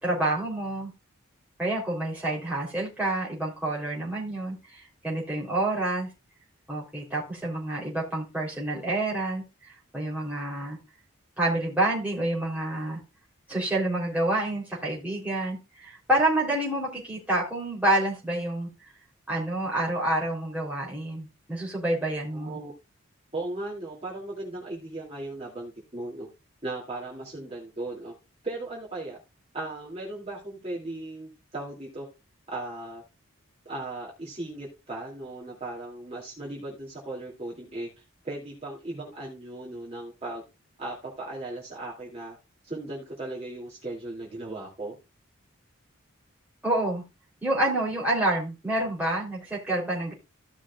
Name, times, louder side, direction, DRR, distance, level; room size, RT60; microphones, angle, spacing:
voice 1, 0.0-0.9 1.6-4.6 5.0-6.1 6.7-9.4 9.9-10.8 11.4-13.0 13.5-18.7 19.3-22.6 46.6-47.0 47.4-50.1, right 1 dB, 5° right, -5 dB, 3.7 m, -28 dB
voice 2, 22.3-22.7 23.3-26.3 26.6-28.1 28.4-29.2 29.5-32.1 32.5-33.0 33.6-37.9 38.2-40.4 40.8-42.4 42.7-45.0, right 2 dB, 30° right, -5 dB, 2.8 m, -37 dB
16.0 x 6.1 x 2.5 m, 0.26 s
head